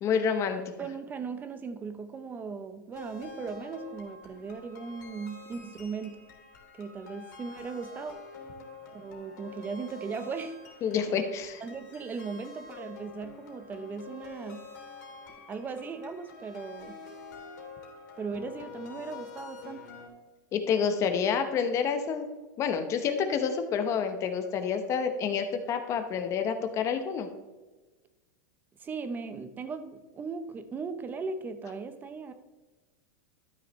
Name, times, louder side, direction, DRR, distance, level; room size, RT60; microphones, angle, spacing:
voice 1, 0.0-0.6 10.8-11.6 20.5-22.3 22.6-27.3, left 6 dB, 30° left, 8 dB, 0.9 m, -28 dB
voice 2, 0.8-6.2 6.8-8.2 8.9-10.6 11.1-11.2 11.6-14.6 15.5-17.0 18.2-19.8 28.8-32.3, right 5 dB, 20° right, 10 dB, 0.7 m, -38 dB
sound 1, 2.9-20.1, left 4 dB, 70° left, 2.9 m, -47 dB
12.5 x 6.4 x 3.2 m, 1.2 s
supercardioid pair, 145°, 10 cm